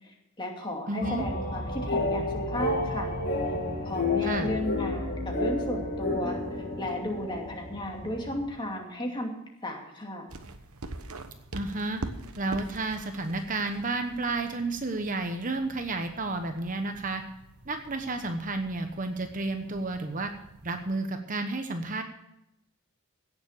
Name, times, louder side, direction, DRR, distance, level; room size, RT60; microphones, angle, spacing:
voice 1, 0.0-3.2 3.8-6.4 6.8-9.3 9.6-10.3, left 1 dB, 20° left, 1 dB, 2.5 m, -34 dB
voice 2, 0.9-1.2 4.2-4.5 11.5-12.0 12.4-17.2 17.7-20.3 20.6-22.0, right 2 dB, 35° right, 6 dB, 1.0 m, -31 dB
sound 1, 1.0-8.5, left 2 dB, 45° left, 2.6 m, -31 dB
sound 2, 10.3-20.9, right 2 dB, 85° right, 1.2 m, -45 dB
17.0 x 7.3 x 6.7 m, 0.84 s
head